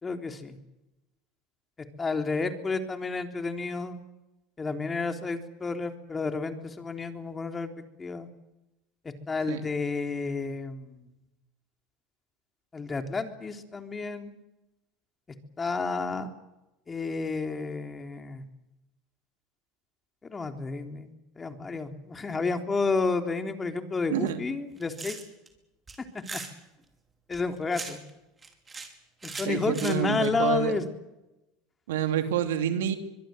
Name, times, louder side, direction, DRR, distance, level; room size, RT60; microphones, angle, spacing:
voice 1, 0.0-0.6 2.0-4.0 4.6-7.7 8.0-8.3 9.0-11.0 12.7-14.4 15.6-16.3 16.9-18.4 20.2-25.2 26.3-26.4 27.3-28.0 29.2-30.8, left 4 dB, 20° left, 6 dB, 3.6 m, -31 dB
sound 1, 24.7-25.5 25.9-26.5 27.3-28.1 28.4-28.9 29.2-30.3, right 4 dB, 20° right, 5.4 m, -39 dB
voice 2, 29.3-30.7 31.9-33.0, right 10 dB, 90° right, 7 dB, 2.9 m, -28 dB
24.5 x 22.0 x 8.0 m, 0.97 s
supercardioid pair, 95°, 0 cm